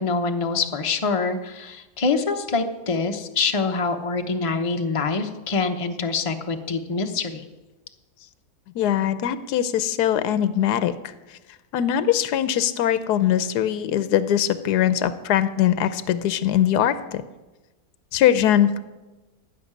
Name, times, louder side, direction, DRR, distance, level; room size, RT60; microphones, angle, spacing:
voice 1, 0.0-7.4, left 4 dB, 25° left, 5 dB, 0.9 m, -25 dB
voice 2, 8.7-10.9 11.7-17.2 18.1-18.8, left 10 dB, 80° left, 13 dB, 1.3 m, -21 dB
15.0 x 6.6 x 10.0 m, 1.1 s
omnidirectional pair, 1.7 m